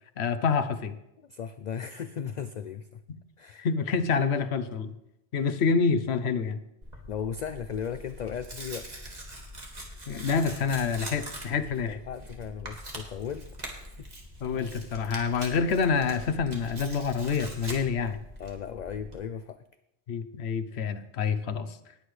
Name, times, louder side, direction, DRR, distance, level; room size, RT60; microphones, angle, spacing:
voice 1, 0.2-0.9 3.6-4.9 5.3-6.6 10.1-12.0 14.4-18.2 20.1-21.7, left 5 dB, 75° left, 10 dB, 1.0 m, -27 dB
voice 2, 1.2-3.0 3.4-3.7 7.1-9.3 9.8-10.0 11.8-14.1 18.4-19.6, left 7 dB, 55° left, 11 dB, 0.5 m, -37 dB
Tearing, 6.8-19.2, right 1 dB, 40° right, 2.0 m, -43 dB
19.0 x 8.0 x 3.2 m, 0.87 s
omnidirectional pair, 1.1 m